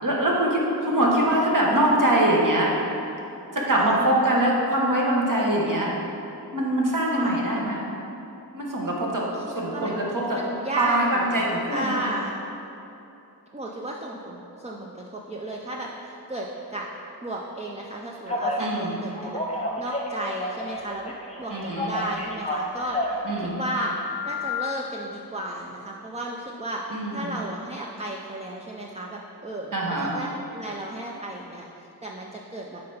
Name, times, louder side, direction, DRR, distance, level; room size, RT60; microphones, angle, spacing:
voice 1, 0.0-2.7 3.5-5.9 6.5-7.8 8.5-9.3 9.5-10.4 10.8-12.1 18.6-18.9 21.5-21.9 23.2-23.6 26.9-27.3 29.7-30.1, right 1 dB, 50° right, -3 dB, 1.3 m, -23 dB
voice 2, 1.0-1.3 3.7-4.0 7.1-7.5 9.3-12.3 13.5-16.9 17.2-19.4 19.8-21.1 21.4-23.0 23.4-23.9 24.2-26.8 27.1-32.8, right 1 dB, 15° right, -1 dB, 0.4 m, -34 dB
Telephone, 18.3-18.6 19.1-20.8 21.0-23.2 23.8-24.5, left 1 dB, 15° left, 0.9 m, -30 dB
7.8 x 3.3 x 5.5 m, 2.8 s
wide cardioid pair, 70°, 40 cm